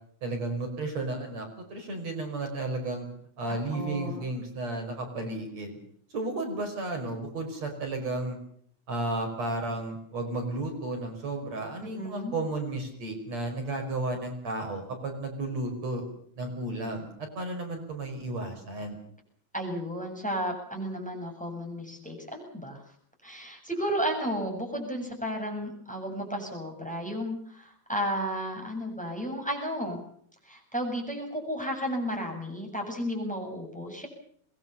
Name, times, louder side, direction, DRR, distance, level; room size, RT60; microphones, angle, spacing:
voice 1, 0.2-3.1 3.4-5.8 6.1-8.4 8.9-16.0 16.4-19.0, right 2 dB, 60° right, 4 dB, 6.5 m, -33 dB
voice 2, 3.5-4.3 11.8-12.3 19.5-22.8 23.2-30.1 30.4-34.1, equal, ahead, 3 dB, 7.4 m, -33 dB
24.5 x 21.5 x 7.0 m, 0.64 s
omnidirectional pair, 3.4 m